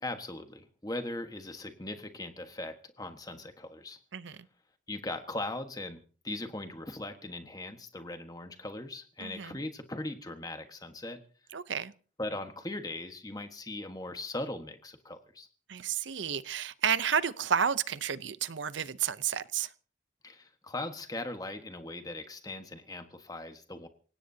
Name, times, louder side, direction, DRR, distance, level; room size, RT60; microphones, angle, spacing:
voice 1, 0.0-4.0 4.9-11.2 12.2-15.5 20.2-23.9, left 2 dB, 20° left, 1.4 m, -39 dB
voice 2, 9.2-9.5 11.5-11.9 15.7-19.7, right 8 dB, 70° right, 0.7 m, -31 dB
27.5 x 17.0 x 2.8 m
head